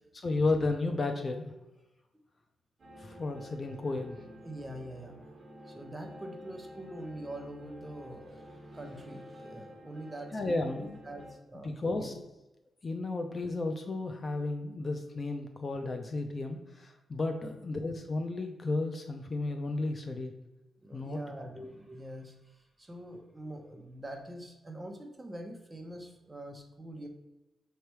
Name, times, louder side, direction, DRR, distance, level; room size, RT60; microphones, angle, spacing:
voice 1, 0.2-1.5 3.0-4.2 10.3-11.0 11.6-12.1 12.8-20.3 20.9-21.2 21.5-21.7, left 2 dB, 35° left, 6 dB, 0.6 m, -33 dB
sound 1, 2.8-11.3, equal, 35° right, 1.3 m, -50 dB
voice 2, 4.4-5.2 5.7-12.2 17.4-17.5 20.8-27.1, right 1 dB, 15° right, 3 dB, 0.9 m, -44 dB
6.5 x 3.3 x 4.6 m, 1.0 s
cardioid pair, 120°, 0 cm